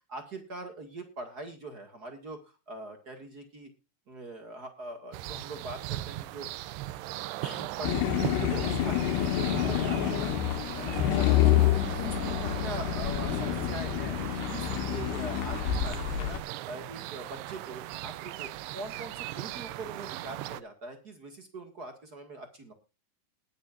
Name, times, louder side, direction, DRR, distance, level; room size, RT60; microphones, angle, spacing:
voice 1, 0.1-3.7 4.1-6.5 7.4-9.1 9.4-11.7 12.0-14.2 14.5-22.7, right 2 dB, 55° right, 5 dB, 1.0 m, -43 dB
sound 1, 5.1-20.6, right 16 dB, 80° right, 2.5 m, -38 dB
sound 2, 7.8-16.4, left 11 dB, 75° left, 3.1 m, -28 dB
20.0 x 9.9 x 2.5 m, 0.30 s
omnidirectional pair, 5.2 m